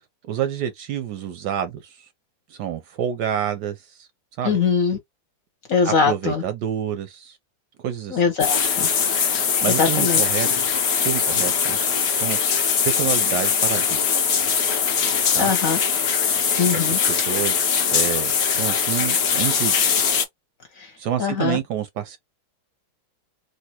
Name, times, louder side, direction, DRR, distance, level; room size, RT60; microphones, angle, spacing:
voice 1, 0.2-2.1 2.5-4.1 4.4-4.6 5.8-7.4 7.8-8.2 9.6-10.5 11.0-12.4 12.8-14.0 15.3-15.5 16.7-19.7 21.0-22.2, right 9 dB, 75° right, 1.0 m, -28 dB
voice 2, 4.4-5.0 5.7-6.4 8.1-8.9 9.8-10.2 15.0-15.8 16.6-17.3 20.8-20.9 21.2-21.6, left 5 dB, 55° left, 1.0 m, -22 dB
sound 1, 8.4-20.2, left 6 dB, 90° left, 0.5 m, -21 dB
3.3 x 2.6 x 2.8 m
omnidirectional pair, 2.1 m